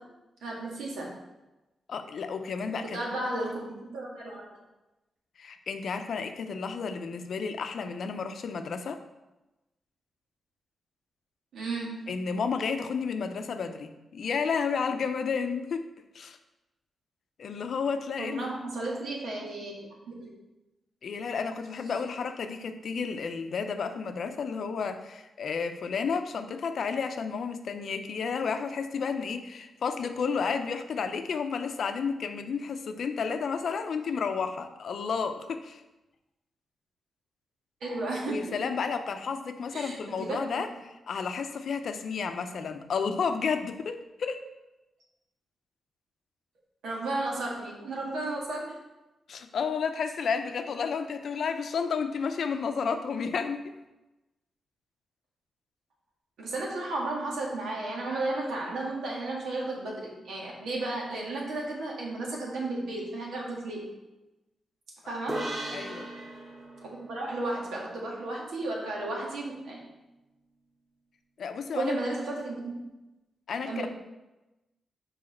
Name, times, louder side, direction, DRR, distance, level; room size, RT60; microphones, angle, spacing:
voice 1, 0.4-1.1 2.9-4.4 11.5-12.2 18.2-20.3 37.8-38.5 39.7-40.7 46.8-48.8 56.4-63.9 65.1-65.5 66.8-69.8 71.7-72.8 73.6-73.9, right 2 dB, 90° right, -3 dB, 1.8 m, -34 dB
voice 2, 1.9-3.0 5.4-9.0 12.1-15.9 16.1-16.4 17.4-18.5 21.0-35.8 38.3-44.4 49.3-53.7 65.0-65.1 65.7-66.1 71.4-72.0 73.5-73.9, left 5 dB, 65° left, 8 dB, 0.6 m, -31 dB
sound 1, 65.3-68.8, right 1 dB, 45° right, 1.7 m, -39 dB
6.3 x 4.9 x 4.3 m, 1.0 s
cardioid pair, 105°, 0 cm